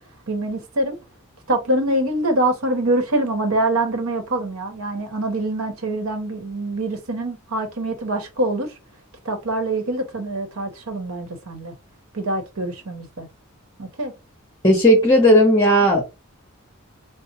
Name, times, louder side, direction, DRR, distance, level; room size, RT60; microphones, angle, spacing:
voice 1, 0.3-1.0 1.5-8.7 9.2-11.7 12.1-13.3 13.8-14.1, right 1 dB, 75° right, 0.9 m, -24 dB
voice 2, 14.6-16.0, equal, 20° left, 0.9 m, -14 dB
4.3 x 2.0 x 2.8 m
head